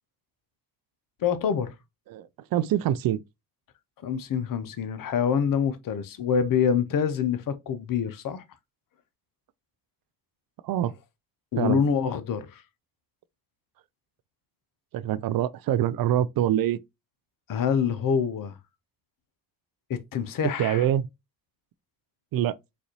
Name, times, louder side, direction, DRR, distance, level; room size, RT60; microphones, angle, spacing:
voice 1, 1.2-1.8 4.0-8.4 11.5-12.6 17.5-18.6 19.9-20.9, left 7 dB, 45° left, 0.7 m, -26 dB
voice 2, 2.1-3.2 10.6-10.9 11.6-11.8 14.9-16.8 20.6-21.0 22.3-22.5, right 11 dB, 50° right, 0.4 m, -25 dB
4.0 x 2.5 x 3.0 m
supercardioid pair, 55°, 47 cm